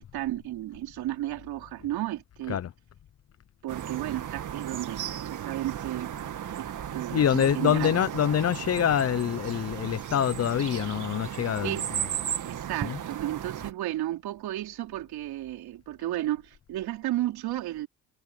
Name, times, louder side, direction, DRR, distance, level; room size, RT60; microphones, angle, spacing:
voice 1, 0.0-2.6 3.6-6.2 6.6-6.7 6.9-7.9 11.6-11.9 12.4-17.9, right 14 dB, 75° right, 3.7 m, -33 dB
sound 1, 3.7-13.7, right 9 dB, 55° right, 2.1 m, -35 dB
voice 2, 7.1-12.1 12.8-13.0, left 9 dB, 40° left, 0.9 m, -26 dB
cardioid pair, 90°, 37 cm